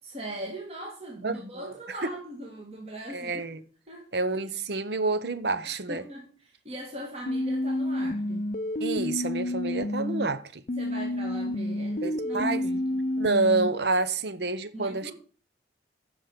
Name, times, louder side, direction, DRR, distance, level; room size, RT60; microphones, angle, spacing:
voice 1, 0.0-3.5 3.9-4.1 5.6-8.4 10.8-13.2 14.7-15.1, right 1 dB, 30° right, 1.8 m, -40 dB
voice 2, 1.2-1.7 3.1-3.6 4.1-6.0 8.8-10.6 12.0-12.6 13.2-15.1, right 3 dB, 60° right, 0.9 m, -28 dB
sound 1, 7.3-10.3 10.7-13.7, left 1 dB, 45° left, 0.6 m, -29 dB
9.8 x 6.3 x 6.9 m
head